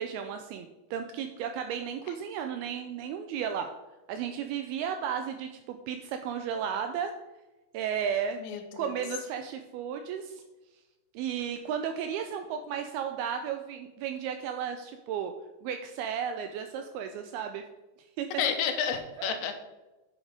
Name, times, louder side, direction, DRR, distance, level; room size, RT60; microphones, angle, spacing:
voice 1, 0.0-3.7 4.1-7.1 7.7-8.4 8.7-10.4 11.1-15.3 15.6-17.6 18.2-18.3 19.2-19.5, right 8 dB, 85° right, 6 dB, 2.2 m, -34 dB
voice 2, 8.4-8.9 18.4-19.5, left 7 dB, 85° left, 7 dB, 3.1 m, -30 dB
8.6 x 6.4 x 5.0 m, 1.1 s
omnidirectional pair, 5.0 m